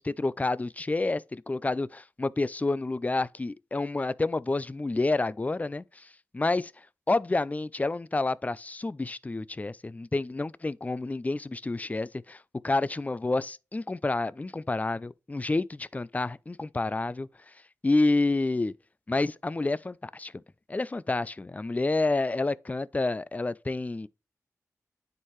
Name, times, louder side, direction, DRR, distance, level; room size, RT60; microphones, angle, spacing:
voice 1, 0.0-6.1 6.3-6.7 7.1-17.3 17.8-18.7 19.1-20.3 20.7-24.1, left 2 dB, 25° left, 0.4 m, -29 dB
9.6 x 4.6 x 3.1 m
cardioid pair, 50°, 6 cm